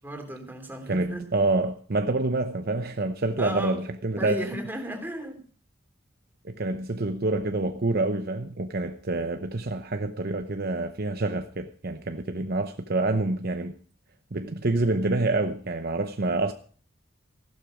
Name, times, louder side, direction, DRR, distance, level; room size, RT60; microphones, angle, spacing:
voice 1, 0.0-1.2 3.4-3.8 4.2-5.4, right 1 dB, 10° right, 3.0 m, -34 dB
voice 2, 0.9-4.4 6.4-13.7 14.3-16.5, right 2 dB, 50° right, 0.8 m, -27 dB
15.5 x 12.0 x 5.0 m
head